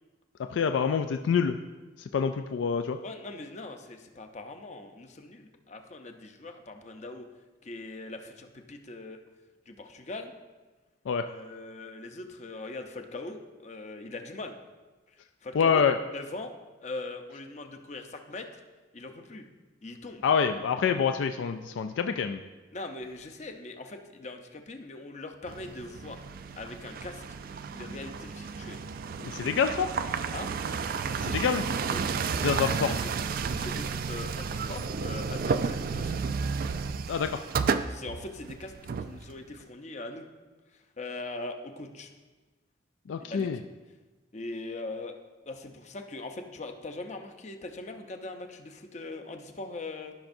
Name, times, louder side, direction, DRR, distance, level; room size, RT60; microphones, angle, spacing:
voice 1, 0.5-1.6 2.0-3.0 11.1-11.3 15.5-16.0 20.2-22.4 29.2-29.9 31.2-31.7 32.4-32.9 37.1-37.4 43.1-43.6, left 6 dB, 80° left, 8 dB, 0.3 m, -26 dB
voice 2, 3.0-7.3 7.6-9.2 9.7-10.3 11.3-14.6 15.4-15.8 16.1-16.5 16.8-18.6 18.9-19.4 19.8-20.2 22.7-26.3 26.6-28.8 30.3-30.5 31.9-32.0 32.3-33.1 33.5-36.2 37.9-40.3 40.7-42.1 43.2-43.5 44.3-45.1 45.4-50.1, left 2 dB, 40° left, 5 dB, 0.7 m, -41 dB
sound 1, 25.5-39.6, right 5 dB, 50° right, 0.3 m, -32 dB
14.5 x 5.9 x 2.6 m, 1.2 s
head